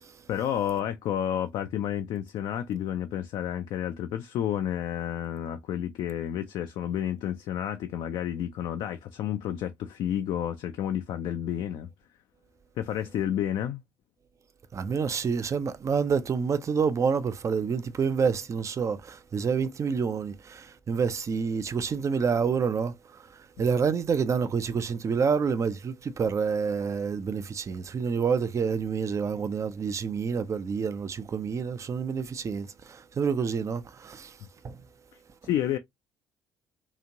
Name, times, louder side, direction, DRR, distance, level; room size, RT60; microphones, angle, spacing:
voice 1, 0.3-11.9 12.8-13.8 35.4-35.8, left 10 dB, 50° left, 0.4 m, -30 dB
voice 2, 14.7-23.2 23.6-34.4 34.6-34.8, right 6 dB, 30° right, 0.4 m, -28 dB
2.9 x 2.5 x 2.5 m
figure-of-eight pair, 50°, 10 cm